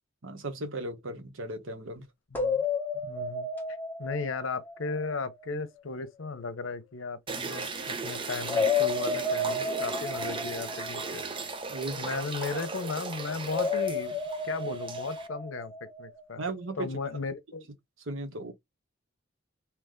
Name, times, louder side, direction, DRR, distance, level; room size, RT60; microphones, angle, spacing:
voice 1, 0.2-2.1 11.7-12.6 16.4-16.9 18.1-18.5, right 2 dB, 75° right, 1.0 m, -37 dB
voice 2, 2.3-2.6 3.0-3.5 4.0-11.2 12.0-15.7 16.0-16.4 16.8-17.7, left 4 dB, 80° left, 0.8 m, -36 dB
sound 1, 2.3-5.3 8.4-11.8 13.5-16.2, left 3 dB, 10° left, 0.9 m, -32 dB
sound 2, 7.3-15.3, right 4 dB, 25° right, 0.6 m, -37 dB
3.3 x 3.0 x 3.6 m
head